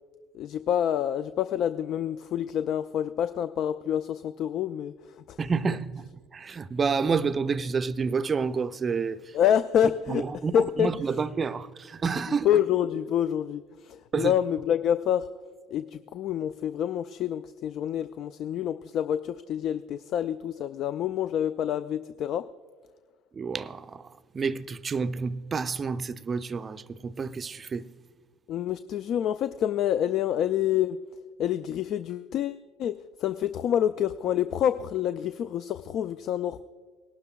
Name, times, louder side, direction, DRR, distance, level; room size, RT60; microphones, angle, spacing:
voice 1, 0.3-5.4 9.3-10.2 10.5-10.9 12.4-15.3 15.7-22.4 28.5-31.0 31.4-32.9 33.2-36.6, left 10 dB, 55° left, 0.3 m, -27 dB
voice 2, 5.4-9.4 10.1-12.5 14.1-14.3 23.3-27.9, right 5 dB, 35° right, 0.4 m, -29 dB
19.5 x 12.0 x 2.3 m
hypercardioid pair, 65°, 0 cm